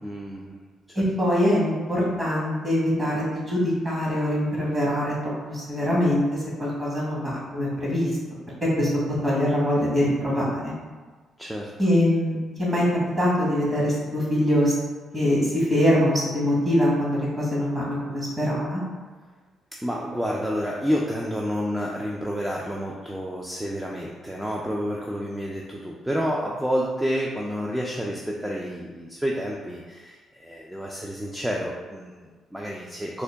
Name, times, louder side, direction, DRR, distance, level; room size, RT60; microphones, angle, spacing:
voice 1, 0.0-0.6 0.9-1.0 11.4-11.7 19.8-33.2, equal, 5° right, -3 dB, 0.4 m, -29 dB
voice 2, 0.9-8.1 8.6-8.9 9.2-10.7 11.8-12.9 13.2-14.7 15.1-18.8, left 1 dB, 25° right, -6 dB, 1.4 m, -23 dB
3.7 x 2.1 x 3.4 m, 1.4 s
cardioid pair, 90°, 0 cm